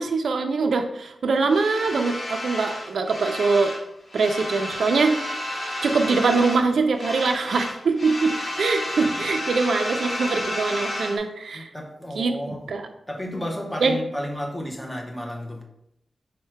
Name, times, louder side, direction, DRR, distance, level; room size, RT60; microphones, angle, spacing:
voice 1, 0.0-3.7 4.1-5.2 5.8-11.7 12.2-12.3 12.7-12.9 13.8-14.0, right 4 dB, 75° right, 0.3 m, -23 dB
sound 1, 1.5-3.8 4.1-6.7 6.9-11.2, left 1 dB, 50° left, 1.1 m, -31 dB
voice 2, 11.5-12.7 13.1-15.6, equal, 10° left, 0.6 m, -32 dB
4.4 x 2.1 x 4.4 m
wide cardioid pair, 160°, 0 cm